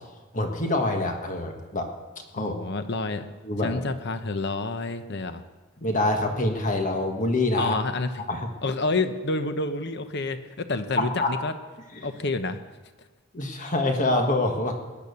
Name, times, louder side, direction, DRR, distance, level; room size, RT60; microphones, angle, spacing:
voice 1, 0.3-1.9 2.3-2.5 3.4-3.8 5.8-7.8 8.3-8.5 11.0-11.3 13.3-14.8, left 2 dB, 35° left, 4 dB, 1.6 m, -25 dB
voice 2, 2.4-3.3 3.6-5.4 7.6-8.2 8.6-11.5 12.0-12.6, left 3 dB, 55° left, 9 dB, 0.9 m, -29 dB
19.0 x 10.5 x 6.9 m, 1.2 s
head